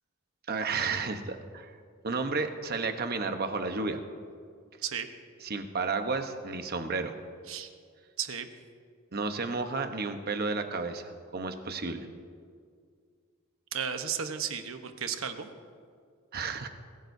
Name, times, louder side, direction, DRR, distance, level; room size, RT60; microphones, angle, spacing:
voice 1, 0.5-1.8 2.0-4.0 5.4-7.1 9.1-11.0 11.3-12.1 16.3-16.7, right 4 dB, 50° right, 7 dB, 1.0 m, -32 dB
voice 2, 8.2-8.5 13.7-15.5, right 7 dB, 80° right, 7 dB, 1.0 m, -34 dB
21.5 x 15.5 x 2.7 m, 2.1 s
head